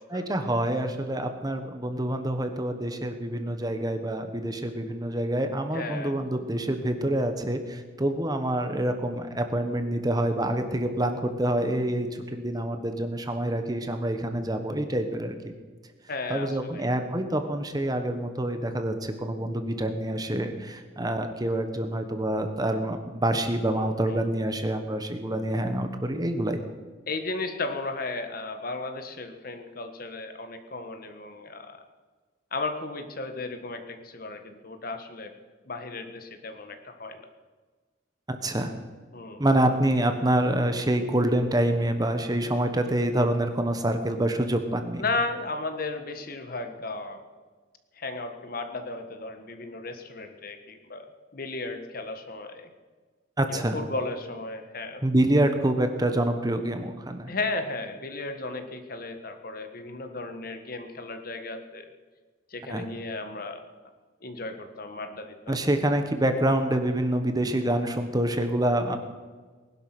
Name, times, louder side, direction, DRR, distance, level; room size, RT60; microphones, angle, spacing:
voice 1, 0.1-15.5 16.3-26.6 38.3-38.7 39.4-45.0 53.4-53.8 55.0-57.3 62.7-62.9 65.5-69.0, right 1 dB, 20° right, 7 dB, 1.2 m, -26 dB
voice 2, 5.7-6.1 16.1-16.9 23.7-24.2 27.1-31.8 32.5-35.3 35.7-37.2 39.1-39.4 45.0-47.2 48.0-51.1 51.3-52.7 53.5-55.0 57.3-61.9 62.5-63.6 64.2-65.6, left 3 dB, 50° left, 7 dB, 1.5 m, -35 dB
20.0 x 11.5 x 6.1 m, 1.4 s
head